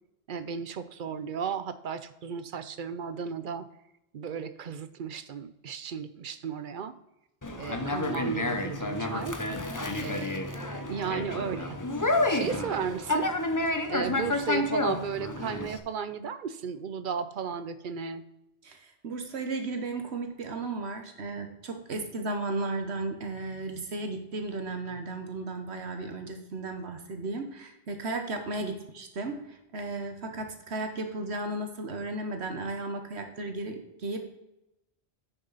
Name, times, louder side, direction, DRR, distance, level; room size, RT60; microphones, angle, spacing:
voice 1, 0.3-3.7 4.1-7.0 7.6-9.4 10.0-11.8 12.3-13.3 13.9-18.2 28.6-28.8, right 7 dB, 55° right, 13 dB, 0.7 m, -35 dB
Conversation, 7.4-15.8, left 2 dB, 20° left, 0.7 m, -30 dB
voice 2, 18.6-34.3, right 2 dB, 75° right, 6 dB, 1.3 m, -35 dB
9.8 x 6.7 x 4.0 m, 0.90 s
omnidirectional pair, 1.1 m